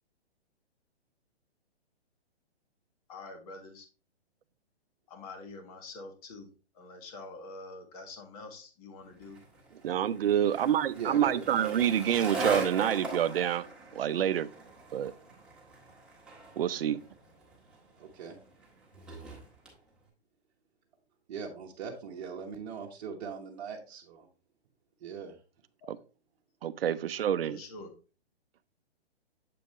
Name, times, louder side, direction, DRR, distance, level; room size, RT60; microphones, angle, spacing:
voice 1, 3.1-3.8 5.1-6.5 6.8-9.4 25.8-25.9 27.5-27.9, left 3 dB, 35° left, 1.6 m, -46 dB
Skateboard, 9.2-19.8, right 2 dB, 5° right, 1.6 m, -40 dB
voice 2, 9.8-13.6 13.9-14.5 14.9-15.1 16.6-17.0 25.9-26.0 26.6-27.6, right 10 dB, 60° right, 0.6 m, -27 dB
voice 3, 10.9-11.9 18.0-18.4 21.3-24.3 25.0-25.4, right 6 dB, 40° right, 1.1 m, -40 dB
7.7 x 5.2 x 3.0 m
hypercardioid pair, 145°, 33 cm